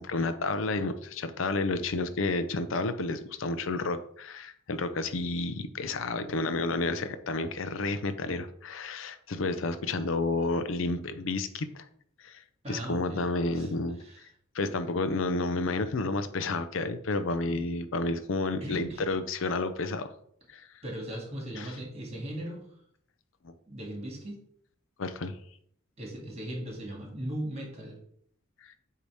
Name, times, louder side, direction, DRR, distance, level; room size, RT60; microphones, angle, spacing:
voice 1, 0.0-11.9 12.2-12.4 12.7-14.3 14.5-20.1 20.5-20.7 21.5-21.7 23.4-23.5 25.0-25.3 28.6-28.7, left 3 dB, 70° left, 11 dB, 0.5 m, -31 dB
voice 2, 12.6-13.2 13.5-13.7 14.0-14.3 17.4-17.6 18.6-19.0 20.8-22.8 23.7-24.4 26.0-28.0, right 1 dB, 30° right, 0 dB, 1.9 m, -38 dB
8.3 x 2.8 x 4.8 m, 0.66 s
head